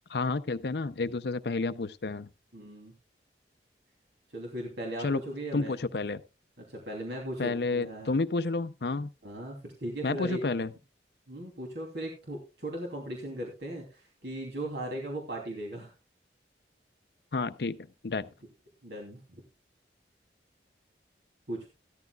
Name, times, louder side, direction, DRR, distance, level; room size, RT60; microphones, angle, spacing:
voice 1, 0.1-2.3 5.0-5.2 5.5-6.2 7.4-9.1 10.0-10.7 17.3-17.8 18.0-18.3, left 3 dB, 65° left, 0.6 m, -30 dB
voice 2, 2.5-2.9 4.3-5.8 6.7-8.2 9.2-10.4 11.3-15.9 18.8-19.4 21.5-21.7, right 1 dB, 70° right, 2.9 m, -38 dB
14.5 x 13.0 x 2.3 m
head